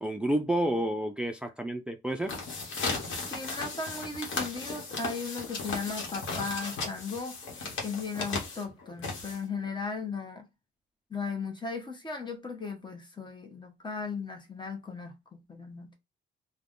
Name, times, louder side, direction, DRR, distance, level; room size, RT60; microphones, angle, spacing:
voice 1, 0.0-2.3, right 1 dB, 5° right, 0.4 m, -30 dB
sound 1, 2.1-9.7, left 3 dB, 70° left, 1.0 m, -36 dB
voice 2, 3.3-7.4 7.8-10.4 11.1-16.0, left 4 dB, 25° left, 0.9 m, -36 dB
3.3 x 2.2 x 2.5 m
cardioid pair, 90°, 20 cm